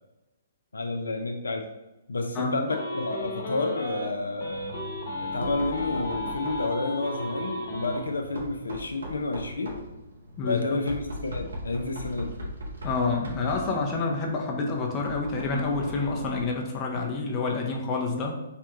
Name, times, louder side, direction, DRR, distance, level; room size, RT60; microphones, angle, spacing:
voice 1, 0.7-1.7 2.1-4.6 5.2-9.8 10.4-12.3, left 3 dB, 80° left, 3 dB, 0.4 m, -30 dB
sound 1, 2.7-4.1 4.4-8.0, left 1 dB, 60° left, 1.0 m, -34 dB
Knock, 4.4-16.7, equal, 75° right, 0.8 m, -40 dB
voice 2, 10.4-10.8 12.8-18.3, left 4 dB, 30° left, 1 dB, 0.6 m, -28 dB
3.3 x 2.2 x 2.9 m, 1.0 s
figure-of-eight pair, 125°, 0 cm